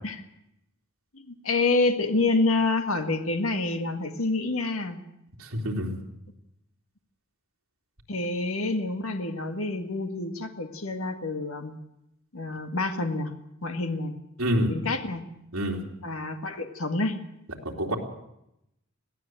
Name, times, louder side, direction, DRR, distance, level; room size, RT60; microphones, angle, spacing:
voice 1, 1.1-5.0 8.1-11.8 12.3-13.3 13.6-14.1 14.7-15.2 16.0-17.2, left 3 dB, 70° left, 6 dB, 1.9 m, -27 dB
voice 2, 5.4-6.0 14.4-14.7 15.5-15.8 17.6-18.0, equal, 75° right, 0 dB, 3.3 m, -27 dB
22.0 x 15.0 x 7.8 m, 0.83 s
head